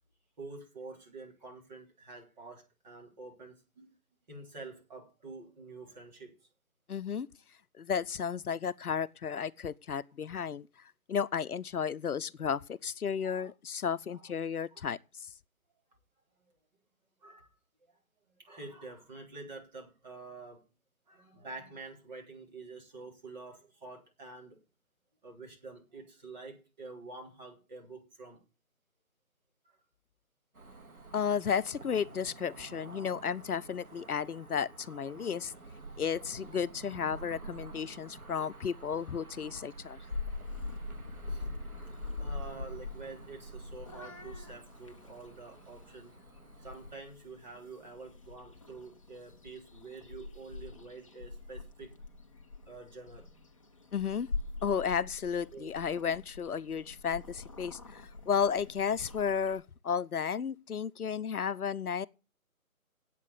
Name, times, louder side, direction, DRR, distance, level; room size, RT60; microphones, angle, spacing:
voice 1, 0.4-3.9 4.3-6.3 13.2-13.5 14.1-14.3 14.7-14.8 17.2-17.5 17.9-18.0 18.4-20.6 21.1-24.6 25.2-28.4 29.6-29.8 41.3-41.5 42.2-46.2 46.6-51.9 52.6-53.3 55.5-55.7, right 3 dB, 30° right, 3.6 m, -48 dB
voice 2, 6.9-7.3 7.8-10.7 11.1-15.3 31.1-35.5 36.0-40.0 53.9-54.3 54.6-62.1, left 7 dB, 90° left, 0.7 m, -33 dB
Cricket / Motor vehicle (road), 30.5-46.9, right 3 dB, 75° right, 2.4 m, -49 dB
Purr / Meow, 40.1-59.6, left 3 dB, 25° left, 0.8 m, -44 dB
8.5 x 8.4 x 8.2 m
figure-of-eight pair, 160°, 43 cm